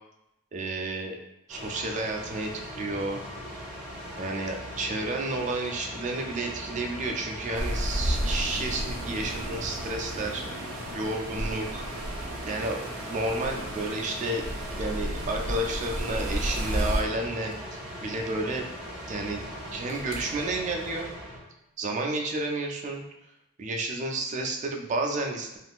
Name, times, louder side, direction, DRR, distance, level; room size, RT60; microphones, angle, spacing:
voice 1, 0.5-1.2 1.5-3.2 4.2-10.4 10.9-11.9 12.5-14.5 14.8-18.7 19.1-19.4 19.7-21.1 21.8-23.0 23.6-25.6, right 2 dB, 35° right, 3 dB, 0.3 m, -31 dB
sound 1, 1.5-21.4, equal, 5° right, 1.2 m, -39 dB
sound 2, 7.5-17.0, right 1 dB, 90° right, 0.6 m, -33 dB
sound 3, 17.1-21.4 22.6-22.7, left 1 dB, 65° left, 0.6 m, -49 dB
3.5 x 2.5 x 2.4 m, 0.87 s
head